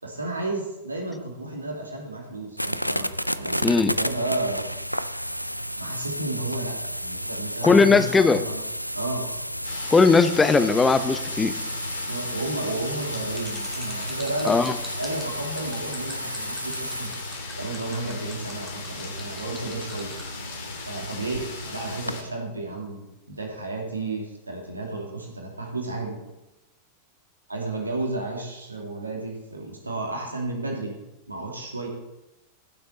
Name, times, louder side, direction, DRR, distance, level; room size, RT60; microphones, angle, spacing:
voice 1, 0.0-3.1 3.3-4.7 5.8-8.6 8.9-9.3 12.0-17.1 17.6-20.1 20.9-26.2 27.5-31.0 31.3-31.9, right 2 dB, 80° right, 0 dB, 2.5 m, -32 dB
sound 1, 2.6-22.2, equal, 90° left, 0.4 m, -33 dB
voice 2, 3.6-3.9 7.6-8.4 9.9-11.5 14.4-14.7, left 4 dB, 15° left, 12 dB, 0.8 m, -18 dB
sound 2, 9.6-22.2, left 4 dB, 55° left, 3.0 m, -39 dB
sound 3, 13.3-20.3, right 1 dB, ahead, 2.6 m, -43 dB
15.0 x 6.9 x 4.1 m, 0.95 s
figure-of-eight pair, 90°, 0 cm